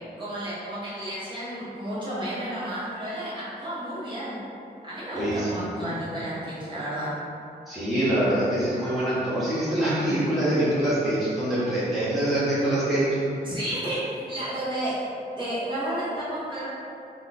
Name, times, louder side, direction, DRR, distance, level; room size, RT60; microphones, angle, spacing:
voice 1, 0.2-4.4 4.8-7.1 13.4-14.9 15.4-16.7, right 1 dB, 30° right, -11 dB, 1.0 m, -32 dB
voice 2, 5.1-5.9 7.7-13.1, right 1 dB, ahead, -12 dB, 0.9 m, -25 dB
2.9 x 2.4 x 4.0 m, 2.7 s
wide cardioid pair, 125°, 17 cm